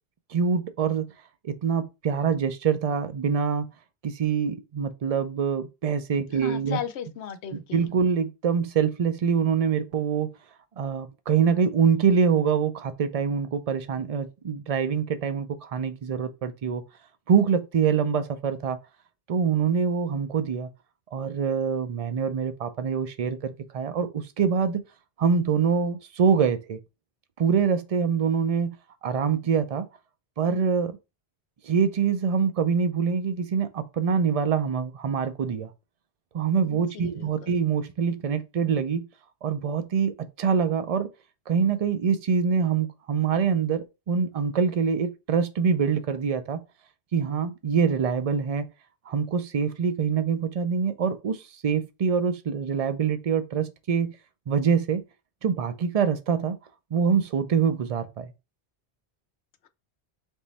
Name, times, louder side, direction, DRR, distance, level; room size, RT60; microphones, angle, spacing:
voice 1, 0.3-1.1 1.4-3.7 4.0-6.8 7.7-10.3 10.8-16.8 17.3-18.8 19.3-20.7 21.1-24.8 25.2-26.8 27.4-28.8 29.0-29.9 30.4-31.0 31.6-35.7 36.3-39.1 39.4-40.1 40.4-41.1 41.5-46.6 47.1-48.7 49.1-54.1 54.5-55.0 55.4-56.6 56.9-58.3, right 6 dB, 45° right, 0.5 m, -25 dB
voice 2, 6.3-7.9 36.6-37.5, left 9 dB, 80° left, 0.9 m, -37 dB
3.6 x 3.0 x 4.1 m
omnidirectional pair, 1.1 m